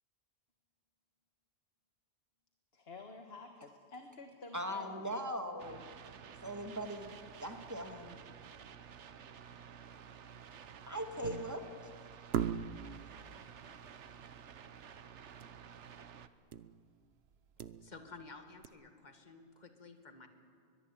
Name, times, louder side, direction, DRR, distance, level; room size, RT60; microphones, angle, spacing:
voice 1, 2.7-5.2, left 3 dB, 60° left, 5 dB, 1.7 m, -51 dB
voice 2, 4.5-5.9 6.4-7.1 7.4-8.2 10.9-11.7, equal, 15° right, 5 dB, 2.0 m, -40 dB
sound 1, 5.6-16.3, right 7 dB, 85° right, 1.2 m, -52 dB
sound 2, 11.2-11.7 12.3-13.0 15.4-15.6 15.9-16.0 16.5-16.8 17.3-18.2 18.6-18.7, right 8 dB, 65° right, 1.0 m, -38 dB
voice 3, 17.8-20.3, left 3 dB, 40° left, 5 dB, 2.1 m, -53 dB
22.5 x 21.5 x 8.7 m, 2.2 s
omnidirectional pair, 1.2 m